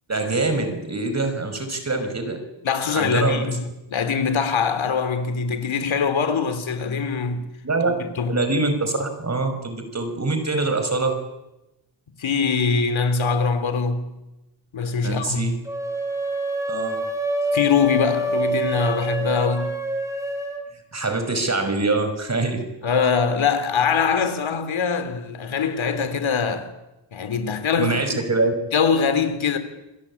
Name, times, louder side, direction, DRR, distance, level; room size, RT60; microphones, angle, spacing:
voice 1, 0.1-2.4 2.9-3.5 7.6-8.0 8.3-11.3 15.0-15.6 16.7-17.1 20.9-22.7 27.8-28.5, right 3 dB, 35° right, 5.8 m, -24 dB
voice 2, 2.6-7.5 7.9-8.4 12.2-14.1 14.7-15.5 17.5-19.7 22.8-26.7 27.1-28.2 28.7-29.6, left 5 dB, 75° left, 3.6 m, -23 dB
sound 1, 15.7-20.6, equal, 5° right, 5.4 m, -26 dB
27.5 x 21.5 x 8.7 m
cardioid pair, 90°, 47 cm